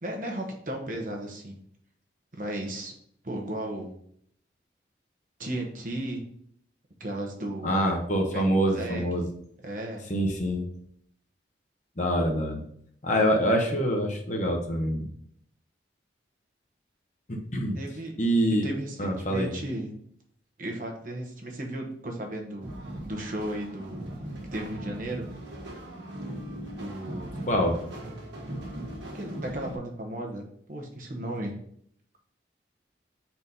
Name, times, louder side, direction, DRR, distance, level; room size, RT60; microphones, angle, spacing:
voice 1, 0.0-1.6 2.3-2.9 3.2-3.9 5.4-6.2 7.0-7.8 8.3-9.0 9.6-10.1 17.7-18.1 18.6-19.9 20.6-22.7 23.0-24.1 24.5-25.3 26.8-27.4 29.1-31.5, right 1 dB, 45° right, 1 dB, 1.1 m, -35 dB
voice 2, 7.6-9.3 10.1-10.7 12.0-12.6 13.0-15.1 17.3-17.8 18.2-18.7 19.0-19.5 27.5-27.8, equal, 40° left, 1 dB, 1.1 m, -25 dB
sound 1, 22.6-29.8, right 1 dB, 80° right, 1.5 m, -39 dB
4.4 x 4.1 x 5.4 m, 0.66 s
head